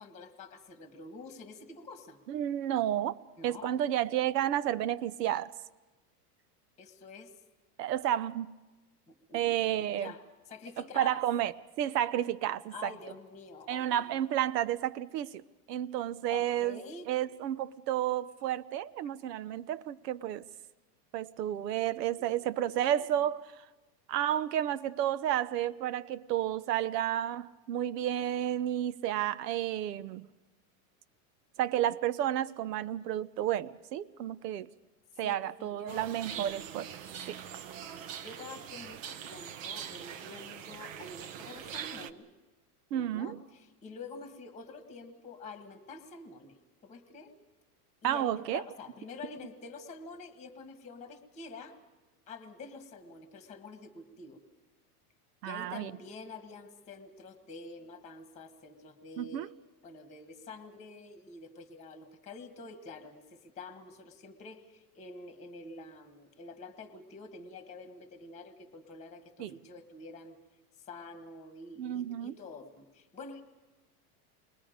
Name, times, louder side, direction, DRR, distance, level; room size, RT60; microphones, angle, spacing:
voice 1, 0.0-2.2 3.4-3.8 6.8-7.3 9.1-10.2 10.5-11.2 12.7-14.2 16.3-17.1 22.2-22.3 22.6-22.9 35.2-36.5 38.2-42.3 42.9-46.6 46.8-47.4 48.0-51.8 52.3-54.4 55.4-59.5 59.8-70.4 70.9-73.4, left 3 dB, 15° left, 1.4 m, -47 dB
voice 2, 2.3-5.5 7.8-8.6 9.3-10.1 10.8-12.9 13.7-15.4 15.7-16.8 17.1-20.4 21.1-23.5 24.1-30.3 31.6-34.7 35.2-36.9 37.3-37.4 42.9-43.4 48.0-48.6 55.4-55.9 59.2-59.5 69.4-69.5 71.8-72.3, right 11 dB, 90° right, 1.0 m, -31 dB
sound 1, 35.9-42.1, right 9 dB, 55° right, 1.0 m, -43 dB
28.5 x 22.0 x 5.1 m
supercardioid pair, 180°, 47 cm